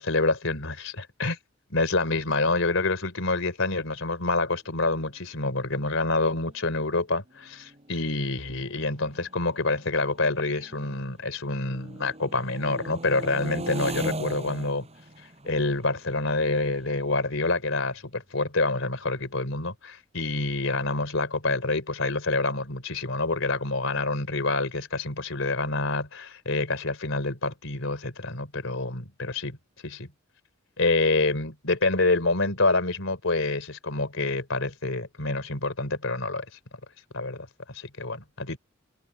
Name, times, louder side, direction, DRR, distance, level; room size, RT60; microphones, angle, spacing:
voice 1, 0.0-1.4 1.7-14.9 15.4-29.6 29.8-30.1 30.8-36.5 37.1-38.6, left 3 dB, 70° left, 3.6 m, -27 dB
sound 1, 6.3-6.6 7.3-11.2 11.6-18.2, right 1 dB, 30° right, 6.9 m, -40 dB
head